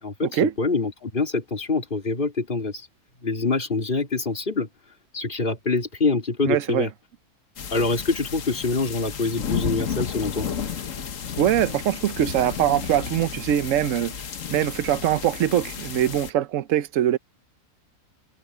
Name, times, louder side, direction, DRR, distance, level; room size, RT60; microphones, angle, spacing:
voice 1, 0.0-2.9 3.2-4.7 5.1-6.9 7.7-10.5, left 3 dB, 35° left, 3.7 m, -25 dB
voice 2, 6.4-6.9 11.4-14.1 14.5-17.2, right 11 dB, 60° right, 1.0 m, -22 dB
sound 1, 7.6-16.3, left 7 dB, 55° left, 1.5 m, -32 dB
omnidirectional pair, 1.6 m